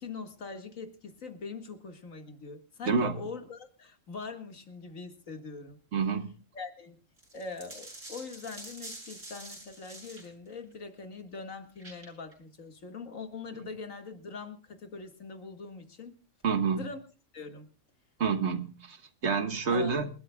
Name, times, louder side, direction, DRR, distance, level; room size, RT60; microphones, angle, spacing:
voice 1, 0.0-5.8 6.5-7.0 7.3-16.1 16.8-17.0 17.3-17.7 19.7-20.0, left 4 dB, 85° left, 6 dB, 2.3 m, -42 dB
voice 2, 2.9-3.2 5.9-6.3 16.4-16.9 18.2-19.0 19.2-20.1, right 5 dB, 60° right, 9 dB, 1.6 m, -28 dB
sound 1, 7.2-10.3 11.8-12.3, right 1 dB, 85° right, 7.7 m, -46 dB
27.5 x 12.5 x 2.3 m, 0.37 s
omnidirectional pair, 1.3 m